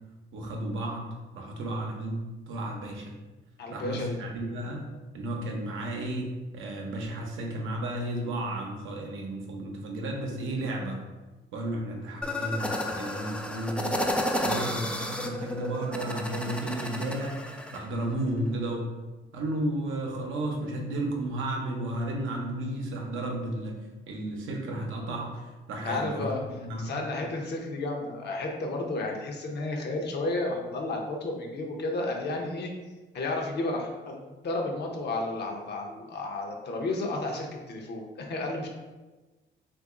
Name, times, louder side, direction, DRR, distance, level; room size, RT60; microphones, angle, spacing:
voice 1, 0.3-1.1 1.3-2.2 2.5-3.1 3.7-4.8 5.1-11.0 11.5-13.9 14.4-17.4 17.7-18.8 19.3-23.8 24.1-26.9, right 1 dB, 80° right, 1 dB, 0.7 m, -33 dB
voice 2, 3.6-4.2 25.8-26.4 26.8-32.7 33.1-38.7, left 2 dB, 55° left, 1 dB, 0.7 m, -32 dB
sound 1, 12.2-17.8, left 1 dB, 5° left, 0.3 m, -32 dB
2.9 x 2.6 x 3.6 m, 1.2 s
cardioid pair, 90°, 20 cm